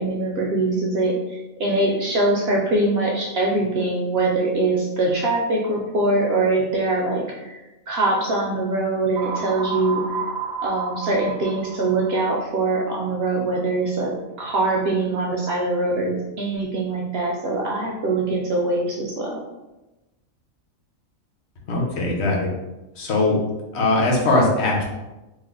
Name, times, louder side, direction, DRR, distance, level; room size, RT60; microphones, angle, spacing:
voice 1, 0.0-7.6 7.9-10.2 10.6-19.4, right 2 dB, 65° right, -2 dB, 0.6 m, -23 dB
sound 1, 9.2-13.0, right 5 dB, 85° right, 1.0 m, -32 dB
voice 2, 21.7-22.5 23.0-23.4 23.7-24.8, left 2 dB, 60° left, -2 dB, 0.9 m, -20 dB
3.2 x 2.0 x 3.5 m, 1.0 s
omnidirectional pair, 1.4 m